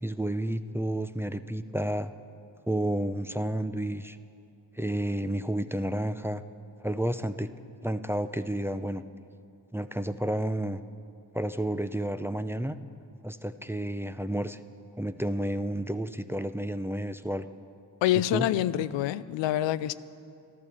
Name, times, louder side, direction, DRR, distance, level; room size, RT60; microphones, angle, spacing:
voice 1, 0.0-2.1 2.7-4.2 4.8-6.4 6.8-7.5 7.8-9.0 9.7-10.8 11.3-12.8 13.2-14.6 15.0-17.5 18.3-18.5, right 1 dB, 5° right, 10 dB, 0.5 m, -31 dB
voice 2, 18.0-19.9, left 13 dB, 85° left, 16 dB, 0.5 m, -26 dB
12.0 x 12.0 x 7.8 m, 2.5 s
supercardioid pair, 55°, 44 cm